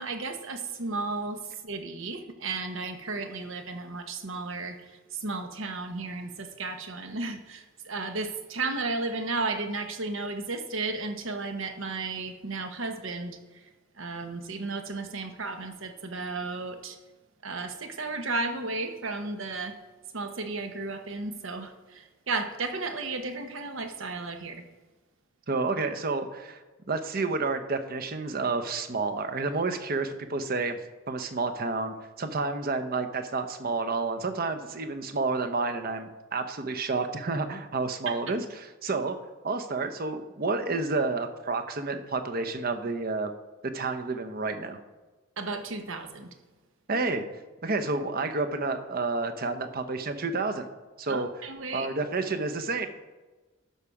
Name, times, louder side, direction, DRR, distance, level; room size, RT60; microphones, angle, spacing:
voice 1, 0.0-13.6 14.0-17.0 17.4-19.7 20.1-24.6 38.0-38.2 45.4-46.3 51.1-51.9, right 3 dB, 75° right, 7 dB, 1.1 m, -34 dB
voice 2, 25.5-26.6 26.9-30.8 31.1-39.2 39.4-43.3 43.7-44.8 46.9-47.3 47.6-50.7 51.0-51.3 51.7-52.9, right 3 dB, 45° right, 8 dB, 0.8 m, -30 dB
12.5 x 5.7 x 4.9 m, 1.2 s
head